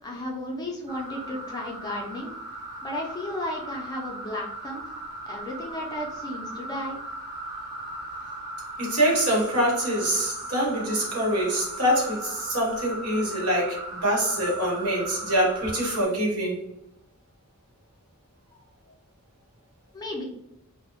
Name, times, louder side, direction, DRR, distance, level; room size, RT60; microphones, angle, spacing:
voice 1, 0.0-2.3 2.8-5.0 5.3-7.0 19.9-20.2, left 1 dB, 20° left, -2 dB, 0.4 m, -34 dB
sound 1, 0.9-16.1, right 2 dB, 20° right, 0.6 m, -38 dB
voice 2, 8.8-16.6, equal, 80° right, -2 dB, 1.0 m, -25 dB
2.6 x 2.0 x 2.8 m, 0.81 s
head